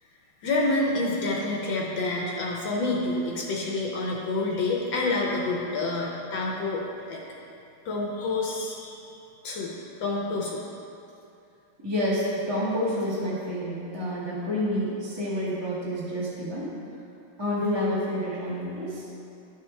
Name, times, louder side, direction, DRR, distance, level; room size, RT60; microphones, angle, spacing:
voice 1, 0.4-6.8 7.1-7.2 7.8-9.0 9.4-9.7 10.0-10.6, left 2 dB, 70° left, -2 dB, 1.4 m, -28 dB
voice 2, 11.8-16.8 17.4-19.0, equal, 15° right, -8 dB, 1.3 m, -29 dB
12.0 x 4.7 x 3.4 m, 2.7 s
omnidirectional pair, 2.4 m